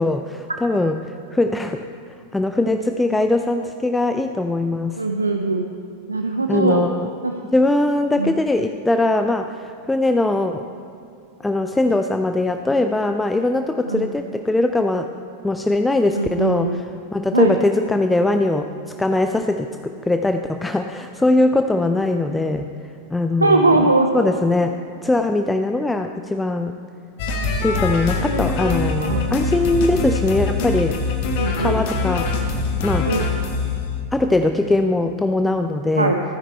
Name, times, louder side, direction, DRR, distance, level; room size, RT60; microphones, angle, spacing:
voice 1, 0.0-5.0 6.5-7.1 7.5-10.7 11.4-15.1 15.4-18.7 19.0-22.7 23.1-23.8 24.1-26.7 27.6-31.0 31.6-32.6 32.8-33.1 34.1-36.2, left 2 dB, 5° left, 7 dB, 0.4 m, -21 dB
voice 2, 5.0-5.7 6.1-6.9 7.2-7.3 8.2-8.3 13.9-14.1 16.1-16.8 17.3-17.6 23.4-24.1 29.0-29.4 31.4-31.8 33.1-33.3 36.0-36.2, right 2 dB, 80° right, 4 dB, 0.6 m, -20 dB
sound 1, 27.2-33.8, left 3 dB, 45° left, 1.4 m, -23 dB
15.0 x 9.8 x 4.4 m, 2.6 s
figure-of-eight pair, 90°, 0 cm